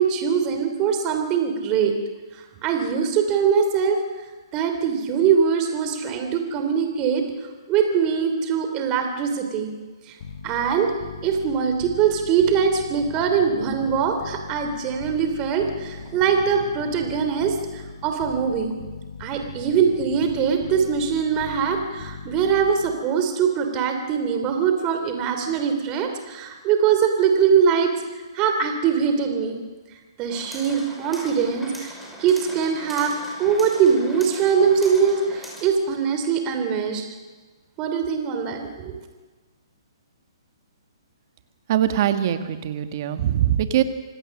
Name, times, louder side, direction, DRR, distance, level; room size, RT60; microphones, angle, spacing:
voice 1, 0.0-1.9 2.6-4.0 4.5-7.3 7.7-9.7 10.1-10.2 10.4-10.9 11.2-18.7 19.2-27.9 28.3-29.6 30.2-31.9 32.2-33.1 33.4-37.0 37.8-39.0, right 7 dB, 30° right, 6 dB, 2.9 m, -22 dB
sound 1, 10.2-23.1, left 5 dB, 55° left, 6.8 m, -39 dB
sound 2, 30.3-35.7, equal, ahead, 6.0 m, -40 dB
voice 2, 41.7-43.8, right 11 dB, 45° right, 8 dB, 1.7 m, -22 dB
26.0 x 17.5 x 6.5 m, 1.3 s
hypercardioid pair, 135°, 3 cm